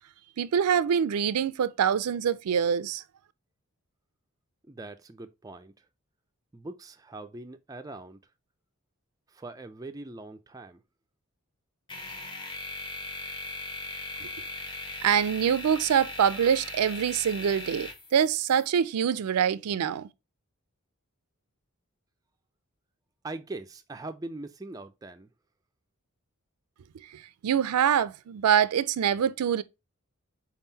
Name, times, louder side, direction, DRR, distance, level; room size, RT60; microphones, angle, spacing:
voice 1, 0.4-3.0 14.2-14.3 15.0-20.1 27.1-29.6, right 8 dB, 85° right, 0.4 m, -25 dB
voice 2, 4.7-5.7 6.5-8.2 9.3-10.8 23.2-25.3, right 2 dB, 15° right, 0.3 m, -41 dB
sound 1, 11.9-18.7, left 2 dB, 20° left, 0.9 m, -39 dB
4.7 x 3.7 x 2.6 m
head